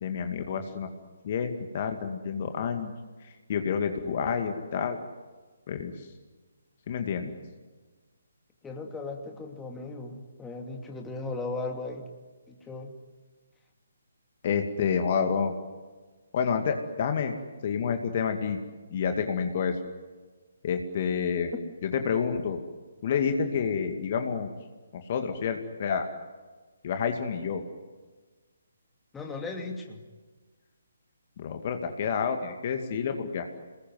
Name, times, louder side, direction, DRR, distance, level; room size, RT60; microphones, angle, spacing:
voice 1, 0.0-0.9 1.2-2.9 3.2-5.0 5.7-5.9 6.9-7.3 14.4-15.5 16.3-17.3 17.6-18.6 18.9-19.8 20.6-21.5 21.8-22.6 23.0-24.5 25.1-26.1 26.8-27.6 31.4-33.5, left 6 dB, 40° left, 6 dB, 2.3 m, -29 dB
voice 2, 8.6-12.0 12.5-12.9 29.1-30.0, left 3 dB, 10° left, 2 dB, 2.8 m, -37 dB
28.0 x 21.0 x 9.5 m, 1.3 s
figure-of-eight pair, 140°, 0 cm